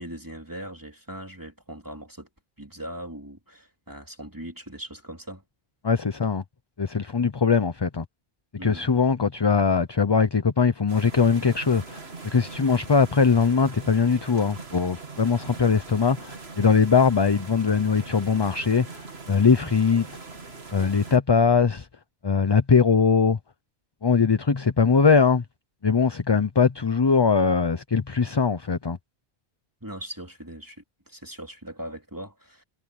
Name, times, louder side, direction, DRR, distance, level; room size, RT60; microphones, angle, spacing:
voice 1, 0.0-2.3 2.6-5.4 8.6-8.9 29.8-32.6, right 1 dB, 20° right, 3.4 m, -40 dB
voice 2, 5.8-6.4 6.8-8.0 8.6-12.0 12.3-20.1 20.7-21.9 22.2-23.4 24.0-25.4 25.8-29.0, left 5 dB, 30° left, 0.6 m, -21 dB
sound 1, 10.9-21.2, right 3 dB, 85° right, 2.4 m, -41 dB
omnidirectional pair, 1.0 m